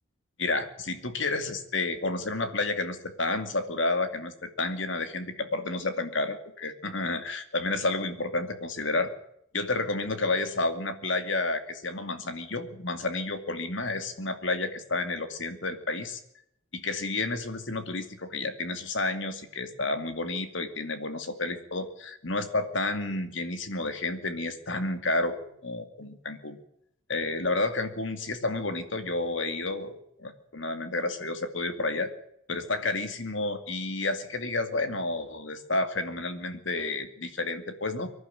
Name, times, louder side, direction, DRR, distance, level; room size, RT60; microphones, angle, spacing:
voice 1, 0.4-9.1 9.5-16.2 16.7-25.3 25.6-26.6 27.1-32.1 32.5-38.1, left 2 dB, 70° left, 8 dB, 2.5 m, -30 dB
24.5 x 11.5 x 9.3 m, 0.74 s
head